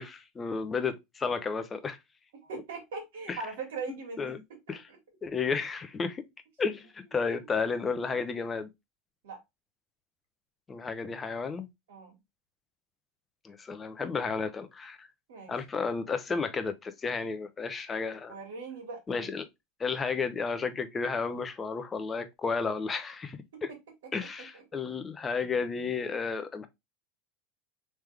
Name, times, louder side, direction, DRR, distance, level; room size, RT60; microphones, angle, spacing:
voice 1, 0.0-2.0 3.3-3.4 3.9-4.4 4.7-4.8 5.2-6.3 6.6-8.7 10.7-11.7 13.4-15.1 15.5-18.4 19.1-19.4 19.8-23.7 24.1-26.7, left 5 dB, 20° left, 0.6 m, -32 dB
voice 2, 2.4-4.4 4.7-5.0 7.4-7.5 9.2-9.4 11.9-12.1 15.3-15.5 18.3-19.0 23.5-23.6 24.5-24.6, right 4 dB, 85° right, 1.9 m, -40 dB
3.5 x 3.1 x 3.2 m
supercardioid pair, 125°, 0 cm